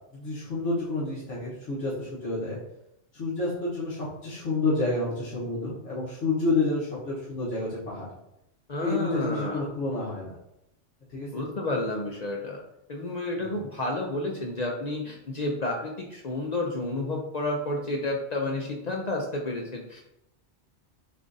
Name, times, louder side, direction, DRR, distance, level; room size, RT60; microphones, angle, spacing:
voice 1, 0.1-2.6 3.1-8.1 8.8-10.4 11.1-11.4 13.4-13.6, left 2 dB, 90° left, -9 dB, 1.5 m, -29 dB
voice 2, 8.7-9.6 11.3-12.6 12.9-20.0, left 2 dB, 55° left, 1 dB, 0.5 m, -31 dB
6.7 x 2.4 x 2.6 m, 0.83 s
omnidirectional pair, 1.2 m